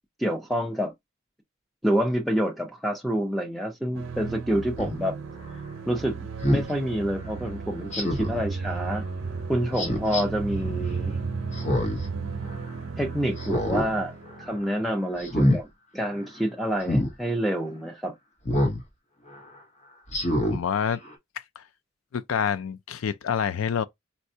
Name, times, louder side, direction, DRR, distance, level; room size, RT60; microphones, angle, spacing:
voice 1, 0.2-0.9 1.8-5.2 5.9-9.0 9.5-11.1 13.0-15.7 15.9-18.1, equal, ahead, 0.5 m, -28 dB
sound 1, 3.9-14.7, right 4 dB, 65° right, 0.6 m, -34 dB
Speech synthesizer, 4.8-5.0 6.4-6.7 7.9-8.4 9.8-10.2 11.5-12.1 12.4-12.5 13.4-13.9 14.3-14.6 15.2-15.6 16.8-17.1 18.5-18.8 19.3-19.4 20.1-20.6 21.0-21.1, left 1 dB, 35° left, 0.9 m, -25 dB
voice 2, 20.5-21.0 21.6-21.7 22.1-23.8, left 7 dB, 75° left, 0.4 m, -27 dB
4.2 x 2.2 x 2.7 m
head